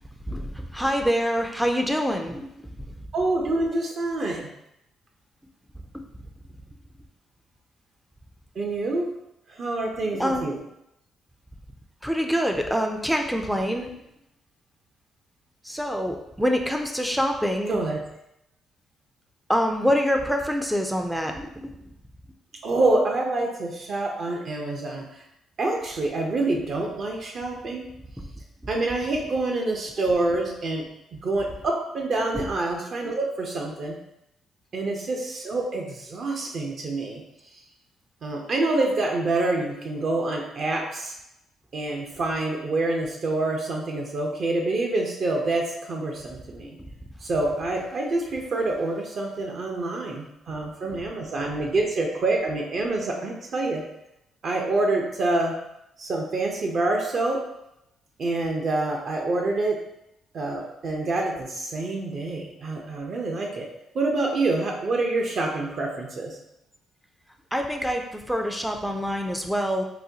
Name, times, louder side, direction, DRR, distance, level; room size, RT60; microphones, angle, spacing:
voice 1, 0.3-2.5 5.9-6.0 10.1-10.5 12.0-13.9 15.6-17.8 19.5-21.7 28.2-28.3 32.3-32.5 34.7-34.9 67.5-69.8, equal, ahead, 3 dB, 0.4 m, -25 dB
voice 2, 3.1-4.5 8.6-9.1 9.6-10.6 17.7-18.0 22.6-25.0 25.6-27.8 28.7-30.8 31.1-34.0 34.7-37.2 38.2-41.1 41.7-46.8 47.2-53.8 54.4-55.6 56.0-57.4 58.2-59.8 60.3-63.7 63.9-66.3, right 2 dB, 55° right, 0 dB, 0.6 m, -26 dB
4.0 x 2.2 x 2.7 m, 0.83 s
cardioid pair, 90°, 0 cm